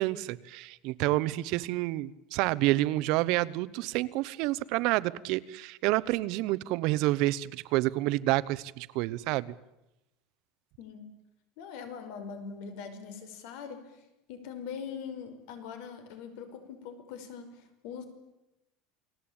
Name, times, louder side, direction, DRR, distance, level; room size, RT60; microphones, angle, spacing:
voice 1, 0.0-9.5, right 18 dB, 55° right, 17 dB, 0.9 m, -29 dB
voice 2, 10.8-11.1 11.6-13.9 14.3-18.0, left 6 dB, 65° left, 9 dB, 5.1 m, -42 dB
29.0 x 19.5 x 8.8 m, 0.96 s
cardioid pair, 160°, 0 cm